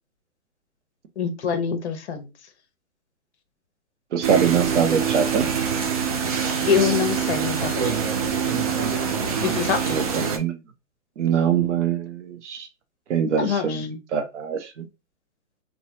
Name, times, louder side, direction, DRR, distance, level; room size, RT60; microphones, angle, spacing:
voice 1, 1.2-2.3 6.7-7.9 9.4-10.0 13.4-13.8, left 7 dB, 55° left, 0.9 m, -24 dB
voice 2, 4.1-5.5 9.9-10.6 11.2-12.7 13.1-14.9, right 7 dB, 55° right, 0.8 m, -23 dB
sound 1, 4.2-10.4, right 7 dB, 30° right, 0.5 m, -24 dB
3.2 x 2.2 x 2.8 m
figure-of-eight pair, 130°, 41 cm